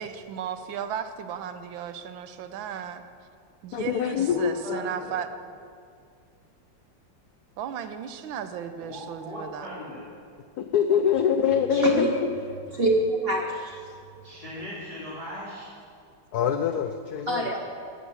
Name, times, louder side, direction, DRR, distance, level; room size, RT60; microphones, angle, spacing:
voice 1, 0.0-3.0 3.6-5.3 7.6-9.7, right 8 dB, 80° right, 10 dB, 1.4 m, -35 dB
voice 2, 3.7-4.8 10.6-12.3 16.3-17.6, left 8 dB, 75° left, 7 dB, 0.9 m, -25 dB
voice 3, 4.3-5.1 8.8-10.1 14.2-15.7, left 1 dB, 15° right, -8 dB, 2.8 m, -39 dB
voice 4, 11.7-12.2 12.7-13.8 17.3-17.6, right 2 dB, 55° right, 1 dB, 0.6 m, -25 dB
11.5 x 6.3 x 8.2 m, 2.3 s
omnidirectional pair, 2.1 m